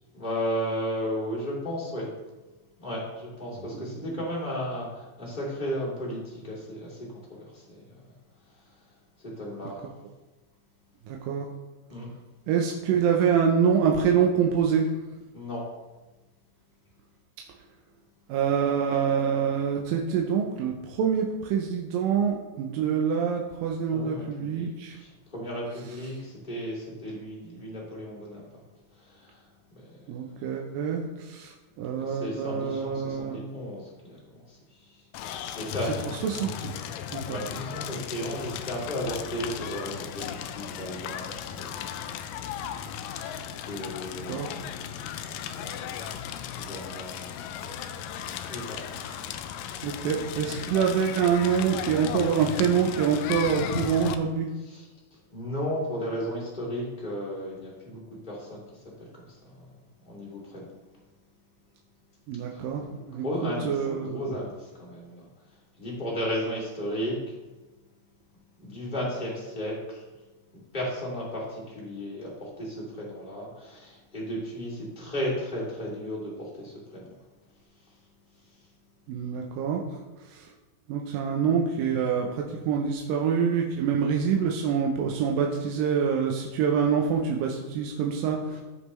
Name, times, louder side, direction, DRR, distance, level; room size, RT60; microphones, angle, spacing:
voice 1, 0.1-2.1 2.8-7.8 9.4-9.8 11.9-12.1 15.3-15.6 23.9-24.7 24.9-28.4 29.1-29.3 29.7-29.9 31.9-34.2 34.5-34.6 35.6-36.1 37.2-41.9 42.9-45.9 46.4-47.3 48.5-49.0 54.7-54.8 55.3-58.0 58.2-58.6 59.3-59.4 60.1-60.7 62.5-65.2 65.8-67.2 68.6-70.0 70.7-77.1, equal, 15° left, -6 dB, 2.4 m, -34 dB
voice 2, 11.1-11.5 12.5-14.9 18.3-25.0 30.1-33.4 36.1-36.8 37.1-37.4 44.3-44.5 49.0-49.2 49.8-54.5 62.3-64.4 79.1-80.0 80.3-80.5 80.9-88.6, right 7 dB, 85° right, 1 dB, 2.5 m, -26 dB
Crackle, 35.1-54.2, left 9 dB, 85° left, 2.2 m, -36 dB
15.0 x 5.4 x 3.2 m, 1.2 s
omnidirectional pair, 3.9 m